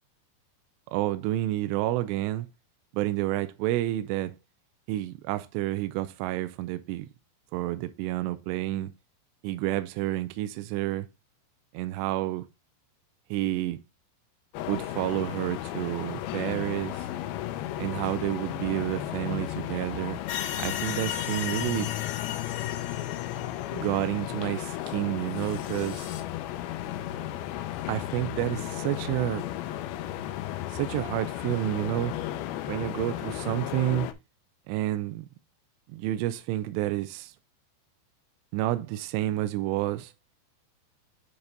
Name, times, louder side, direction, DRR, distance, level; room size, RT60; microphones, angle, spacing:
voice 1, 0.9-2.5 2.9-4.3 4.9-7.1 7.5-8.9 9.4-11.1 11.7-12.5 13.3-13.8 14.7-17.1 17.8-20.2 20.6-21.9 23.7-26.1 27.9-29.4 30.7-32.1 32.7-34.1 34.7-35.3 35.9-37.3 38.5-40.1, right 15 dB, 85° right, 2.6 m, -29 dB
sound 1, 14.5-34.1, left 13 dB, 90° left, 2.1 m, -34 dB
sound 2, 20.3-24.0 24.9-25.0 25.3-26.2, left 10 dB, 70° left, 2.2 m, -36 dB
9.6 x 3.4 x 3.9 m
omnidirectional pair, 5.2 m